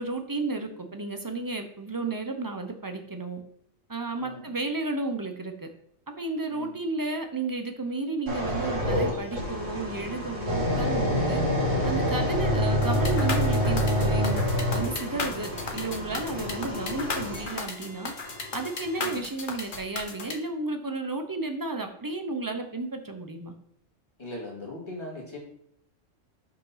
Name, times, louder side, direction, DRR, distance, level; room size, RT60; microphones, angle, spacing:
voice 1, 0.0-3.4 3.9-5.7 6.2-11.4 11.8-18.1 18.5-23.5, right 3 dB, 20° right, 6 dB, 0.6 m, -33 dB
sound 1, 8.3-19.2 19.7-20.0, equal, 90° right, 3.2 m, -27 dB
sound 2, 12.8-20.3, left 4 dB, 45° left, 1.1 m, -35 dB
voice 2, 16.3-16.9 19.0-19.3 24.2-25.4, left 2 dB, 20° left, -3 dB, 2.1 m, -40 dB
5.8 x 5.2 x 5.7 m, 0.72 s
omnidirectional pair, 1.3 m